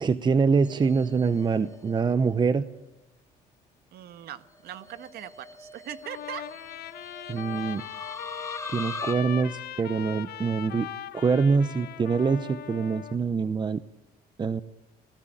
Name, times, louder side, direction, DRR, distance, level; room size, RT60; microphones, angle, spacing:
voice 1, 0.0-2.6 7.3-7.8 8.7-13.8 14.4-14.6, right 5 dB, 25° right, 13 dB, 0.8 m, -25 dB
sound 1, 0.6-2.3 4.6-9.1, left 2 dB, 15° left, 2.4 m, -41 dB
voice 2, 3.9-6.4, right 11 dB, 70° right, 11 dB, 1.6 m, -40 dB
Trumpet, 6.0-13.2, left 11 dB, 70° left, 1.9 m, -39 dB
27.5 x 18.0 x 9.0 m, 1.0 s
cardioid pair, 110°, 17 cm